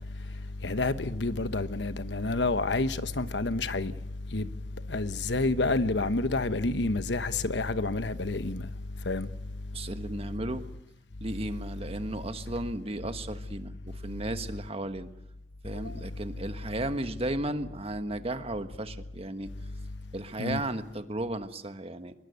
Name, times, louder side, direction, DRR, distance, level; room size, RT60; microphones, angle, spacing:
voice 1, 0.6-3.9 4.3-4.5 4.9-8.6 9.1-9.3 15.8-15.9 20.4-20.6, left 2 dB, 80° left, 1.1 m, -29 dB
voice 2, 9.7-10.7 11.2-15.1 15.6-19.5 20.1-22.1, right 1 dB, 35° right, 1.4 m, -34 dB
24.5 x 22.0 x 8.3 m
head